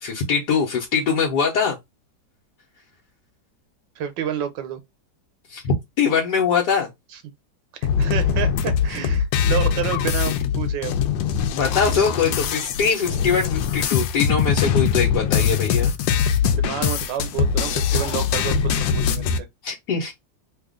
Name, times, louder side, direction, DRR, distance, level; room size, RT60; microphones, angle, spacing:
voice 1, 0.0-1.8 5.5-6.9 11.5-15.9 19.6-20.1, left 6 dB, 70° left, 1.4 m, -22 dB
voice 2, 4.0-4.8 7.8-11.0 16.4-19.5, right 9 dB, 90° right, 1.5 m, -29 dB
sound 1, 7.8-19.4, left 7 dB, 90° left, 1.3 m, -22 dB
3.3 x 2.4 x 3.6 m
omnidirectional pair, 1.9 m